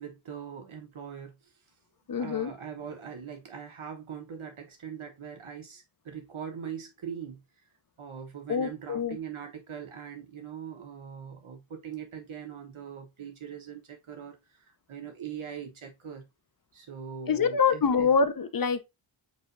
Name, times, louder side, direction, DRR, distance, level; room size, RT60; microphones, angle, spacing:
voice 1, 0.0-1.5 2.2-7.4 8.0-16.3 16.7-18.1, right 8 dB, 80° right, 1.1 m, -41 dB
voice 2, 2.1-2.5 8.5-9.2 17.3-18.8, left 5 dB, 45° left, 0.7 m, -25 dB
7.3 x 2.9 x 2.5 m
wide cardioid pair, 75°, 49 cm